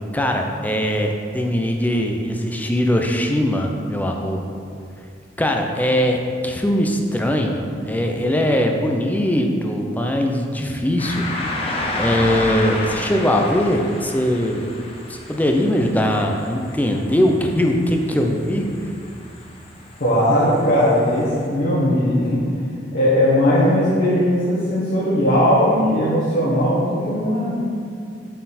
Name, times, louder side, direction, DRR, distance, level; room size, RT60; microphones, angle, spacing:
voice 1, 0.1-4.4 5.4-14.6 15.1-18.7, equal, 10° left, 2 dB, 0.5 m, -21 dB
sound 1, 11.0-21.5, left 1 dB, 35° left, 0.8 m, -31 dB
voice 2, 20.0-22.6 22.9-27.5, equal, 60° left, -9 dB, 1.3 m, -18 dB
7.6 x 4.2 x 4.2 m, 2.3 s
head